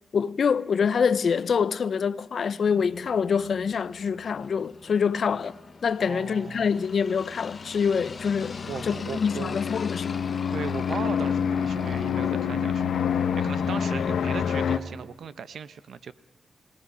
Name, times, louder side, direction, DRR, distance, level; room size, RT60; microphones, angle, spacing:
voice 1, 0.1-5.5 5.8-10.3, left 6 dB, 65° left, 0.7 m, -25 dB
sound 1, 2.6-14.2, left 4 dB, 45° left, 1.1 m, -44 dB
voice 2, 6.0-6.7 8.6-9.6 10.5-16.1, right 6 dB, 75° right, 0.9 m, -37 dB
sound 2, 7.5-14.8, left 7 dB, 85° left, 1.0 m, -28 dB
29.0 x 18.5 x 5.6 m
cardioid pair, 80°, 0 cm